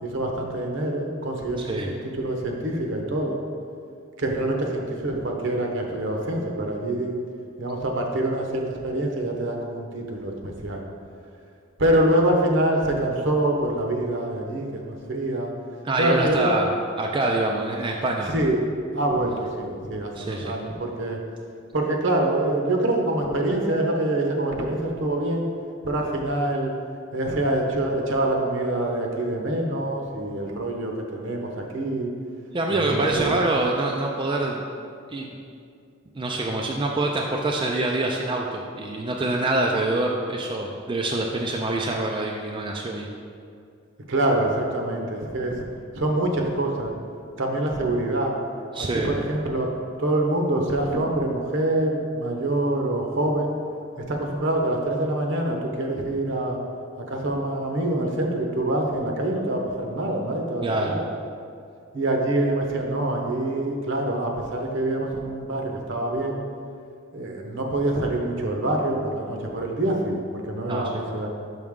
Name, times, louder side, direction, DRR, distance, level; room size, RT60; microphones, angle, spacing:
voice 1, 0.0-3.4 4.2-7.1 7.6-10.8 11.8-15.5 16.0-16.5 18.3-18.7 18.9-21.2 21.7-25.4 25.8-26.7 27.1-32.1 32.7-33.4 44.1-45.7 45.9-46.9 47.4-48.3 48.8-49.7 50.0-53.5 54.0-56.6 57.0-61.0 61.9-66.4 67.1-70.2 70.5-71.3, right 1 dB, 65° right, 1 dB, 0.9 m, -25 dB
voice 2, 15.8-16.7 17.0-18.3 20.2-20.5 32.5-34.6 35.1-35.4 36.1-43.1 48.7-49.1 60.6-61.0 70.7-70.9, right 2 dB, 25° right, 0 dB, 0.4 m, -25 dB
6.3 x 5.7 x 3.6 m, 2.3 s
head